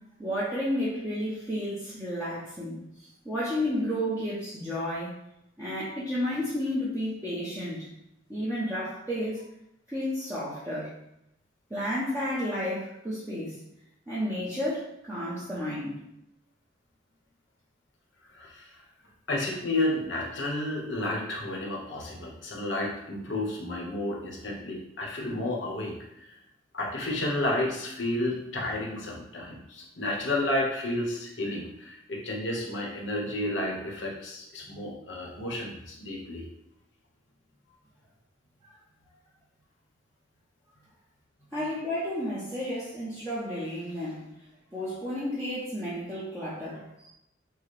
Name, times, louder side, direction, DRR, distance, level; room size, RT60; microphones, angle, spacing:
voice 1, 0.2-5.1 5.6-7.9 8.3-9.4 9.9-10.9 11.7-13.6 14.1-15.9 41.5-44.3 44.7-47.1, equal, 10° right, -10 dB, 0.9 m, -32 dB
voice 2, 18.3-18.7 19.3-26.4 26.7-36.4, left 1 dB, 75° left, -2 dB, 1.2 m, -31 dB
6.2 x 2.3 x 3.3 m, 0.82 s
head